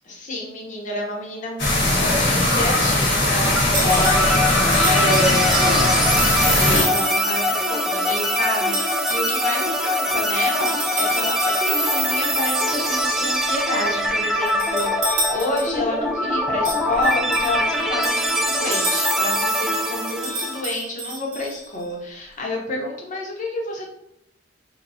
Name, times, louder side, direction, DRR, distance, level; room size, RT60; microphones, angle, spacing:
voice 1, 0.0-8.7 9.1-23.9, left 2 dB, 40° left, -2 dB, 0.9 m, -29 dB
sound 1, 1.6-6.9, left 1 dB, 70° left, 1.2 m, -19 dB
sound 2, 3.7-20.6, equal, ahead, 0.4 m, -22 dB
sound 3, 3.7-6.0 6.8-7.3 8.7-9.7 10.6-12.0 12.9-13.7 14.5-15.9 16.6-19.4 20.1-21.8, right 1 dB, 75° right, 1.3 m, -31 dB
5.3 x 2.2 x 2.7 m, 0.81 s
head